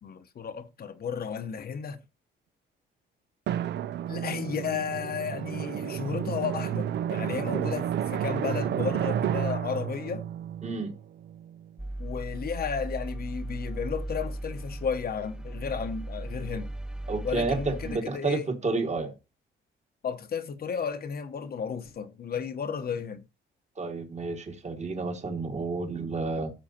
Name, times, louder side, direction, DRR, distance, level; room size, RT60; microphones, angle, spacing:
voice 1, 0.0-2.0 4.1-10.3 12.0-16.7 17.2-18.5 20.0-23.2, left 6 dB, 50° left, 0.9 m, -33 dB
Drum, 3.5-11.7, right 10 dB, 60° right, 0.4 m, -31 dB
voice 2, 10.6-10.9 17.1-19.1 23.8-26.5, right 3 dB, 35° right, 1.9 m, -30 dB
sound 1, 11.8-18.0, right 1 dB, 5° right, 0.4 m, -37 dB
13.5 x 6.1 x 2.8 m
cardioid pair, 90°, 20 cm